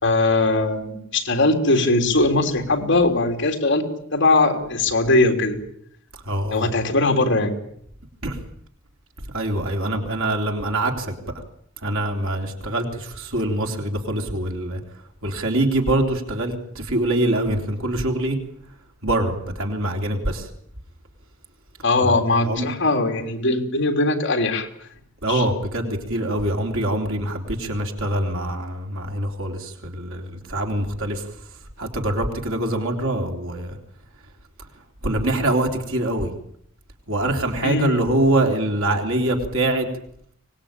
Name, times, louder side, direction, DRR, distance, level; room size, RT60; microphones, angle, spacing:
voice 1, 0.0-3.8 4.1-5.6 6.5-7.5 21.8-24.7 25.3-25.4 37.6-38.0, left 2 dB, 55° left, 4 dB, 3.4 m, -20 dB
voice 2, 6.2-6.7 8.2-8.4 9.3-11.2 11.8-14.8 15.2-18.4 19.0-20.5 22.0-22.6 25.2-31.2 31.8-33.8 35.0-36.3 37.1-39.9, right 1 dB, 65° right, 3 dB, 3.4 m, -24 dB
24.5 x 20.0 x 8.9 m, 0.70 s
head